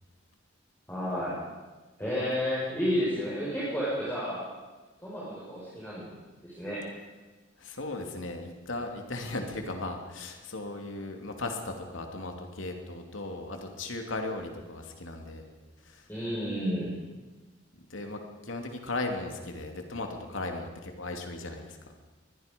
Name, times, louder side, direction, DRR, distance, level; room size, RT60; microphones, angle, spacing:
voice 1, 0.9-1.4 2.0-4.5 5.0-6.1 6.4-6.8 16.1-16.9, equal, 10° left, -8 dB, 5.9 m, -31 dB
voice 2, 7.6-15.4 15.9-16.0 17.9-21.8, left 2 dB, 85° left, 3 dB, 2.9 m, -37 dB
24.5 x 21.0 x 5.4 m, 1.2 s
head